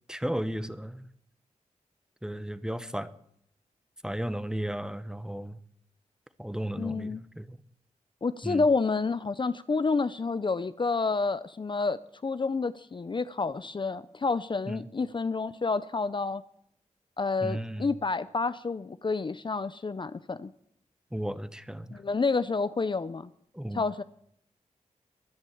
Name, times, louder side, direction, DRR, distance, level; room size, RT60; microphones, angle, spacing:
voice 1, 0.1-1.0 2.2-3.1 4.0-5.6 6.4-7.6 8.4-8.6 14.7-14.9 17.4-17.9 21.1-22.0 23.5-23.8, right 1 dB, 5° right, 0.9 m, -34 dB
voice 2, 6.8-7.2 8.2-16.4 17.2-20.5 21.9-23.3 23.7-24.0, left 4 dB, 40° left, 0.5 m, -29 dB
16.0 x 10.5 x 7.1 m
cardioid pair, 60°, 13 cm